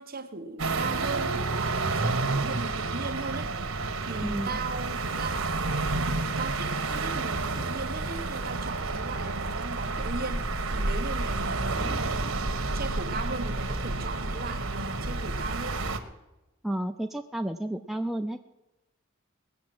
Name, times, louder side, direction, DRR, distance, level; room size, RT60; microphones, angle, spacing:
voice 1, 0.0-3.5 4.0-5.6 6.0-12.3 12.6-15.9, right 3 dB, 45° right, 1.2 m, -38 dB
sound 1, 0.6-16.0, right 3 dB, 90° right, 1.4 m, -30 dB
voice 2, 16.6-18.4, right 1 dB, ahead, 0.4 m, -31 dB
19.0 x 7.3 x 7.8 m
head